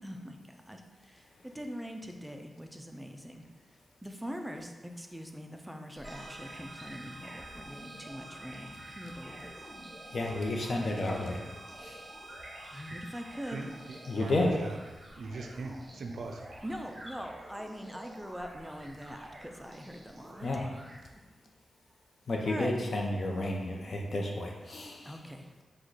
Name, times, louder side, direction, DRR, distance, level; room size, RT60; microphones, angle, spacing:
voice 1, 0.0-3.4 4.0-9.5 12.7-13.6 16.6-20.5 21.1-21.2 22.5-22.7 25.0-25.5, equal, 5° right, 0.3 m, -43 dB
sound 1, 5.9-21.0, right 1 dB, 25° right, 1.1 m, -50 dB
sound 2, 6.0-15.4, right 2 dB, 15° left, 1.4 m, -50 dB
voice 2, 10.1-11.4 11.8-12.0 14.1-14.5 20.4-20.6 22.3-25.2, left 2 dB, 50° left, 0.6 m, -31 dB
voice 3, 13.5-16.5, right 3 dB, 75° right, 0.4 m, -41 dB
4.9 x 2.2 x 3.9 m
wide cardioid pair, 135°, 0 cm